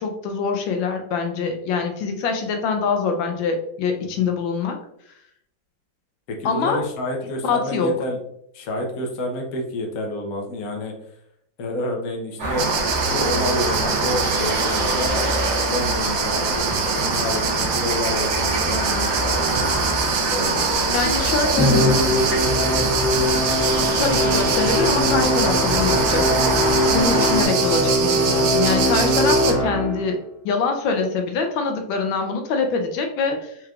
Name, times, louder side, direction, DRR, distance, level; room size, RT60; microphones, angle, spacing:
voice 1, 0.0-4.8 6.4-6.8 7.4-7.9 20.9-21.8 24.0-26.3 26.9-30.2 30.4-33.5, left 4 dB, 85° left, 4 dB, 1.4 m, -24 dB
voice 2, 6.3-8.2 8.5-10.9 11.6-12.6 12.9-15.1 15.7-19.7 20.3-22.9, left 1 dB, 60° left, 2 dB, 1.1 m, -29 dB
sound 1, 12.4-27.4, right 1 dB, 60° right, 1.5 m, -24 dB
sound 2, 12.6-29.5, right 7 dB, 85° right, 1.3 m, -26 dB
Musical instrument, 21.6-30.1, equal, 15° left, 0.6 m, -21 dB
4.4 x 3.2 x 2.4 m, 0.73 s
omnidirectional pair, 2.1 m